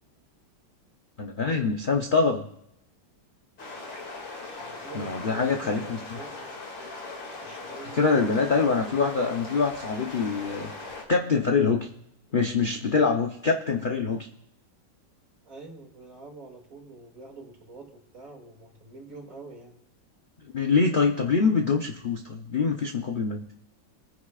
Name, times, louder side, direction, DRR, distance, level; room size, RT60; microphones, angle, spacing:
voice 1, 1.2-2.5 4.9-6.2 7.9-10.7 11.1-11.9 12.3-14.3 20.5-23.4, left 4 dB, 55° left, 2 dB, 0.5 m, -24 dB
sound 1, 3.6-11.0, left 3 dB, 75° left, 3.2 m, -39 dB
voice 2, 4.6-6.5 7.4-8.3 15.4-19.8, right 3 dB, 45° right, 1 dB, 2.7 m, -45 dB
25.5 x 9.9 x 2.4 m, 0.80 s
omnidirectional pair, 2.1 m